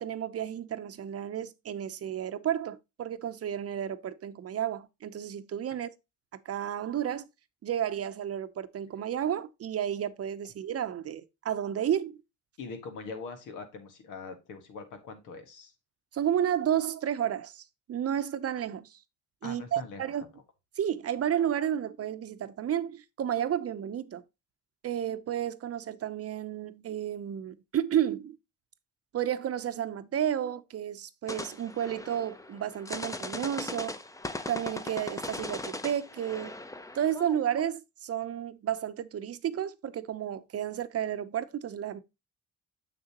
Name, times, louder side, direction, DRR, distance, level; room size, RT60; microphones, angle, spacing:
voice 1, 0.0-5.9 6.5-7.3 7.6-12.2 16.1-17.6 17.9-19.0 19.4-20.2 20.8-24.2 24.8-28.4 29.1-33.9 34.5-36.5 36.9-42.0, right 10 dB, 50° right, 0.7 m, -32 dB
voice 2, 12.6-15.7 19.4-20.4, left 4 dB, 85° left, 1.7 m, -42 dB
sound 1, 31.3-37.6, left 2 dB, 10° left, 0.7 m, -39 dB
6.8 x 6.6 x 2.9 m
cardioid pair, 90°, 30 cm